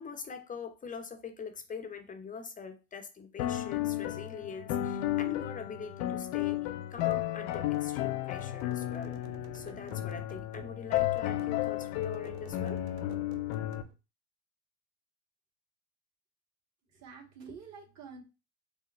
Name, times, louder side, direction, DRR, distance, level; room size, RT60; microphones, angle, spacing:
voice 1, 0.0-6.6 6.9-9.2 9.5-12.8, left 5 dB, 20° left, 6 dB, 0.8 m, -43 dB
sound 1, 3.4-13.8, left 14 dB, 55° left, 0.6 m, -33 dB
sound 2, 7.1-13.9, right 10 dB, 65° right, 0.7 m, -51 dB
voice 2, 16.9-18.2, right 5 dB, 40° right, 0 dB, 1.9 m, -48 dB
5.1 x 2.1 x 3.1 m, 0.29 s
hypercardioid pair, 90°, 40 cm